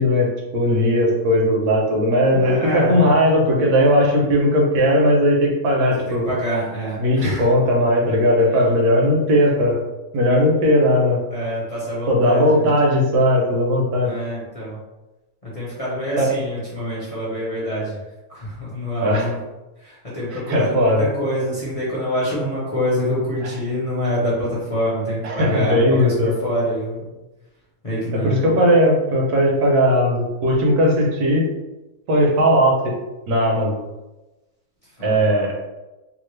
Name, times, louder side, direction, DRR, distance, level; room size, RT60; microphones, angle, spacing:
voice 1, 0.0-6.3 7.0-9.8 10.1-11.2 12.1-14.1 16.1-16.3 19.0-19.3 20.3-21.1 23.4-23.5 25.2-26.4 28.1-31.5 32.1-32.8 33.3-33.8 35.0-35.5, equal, 85° right, -1 dB, 1.3 m, -17 dB
voice 2, 2.2-3.0 6.1-7.5 8.5-8.6 11.3-12.7 14.0-14.8 15.4-17.9 18.3-19.4 19.8-27.1 27.8-28.3 35.0-35.5, equal, 30° left, -8 dB, 0.7 m, -26 dB
3.0 x 2.4 x 3.1 m, 1.1 s
omnidirectional pair, 1.6 m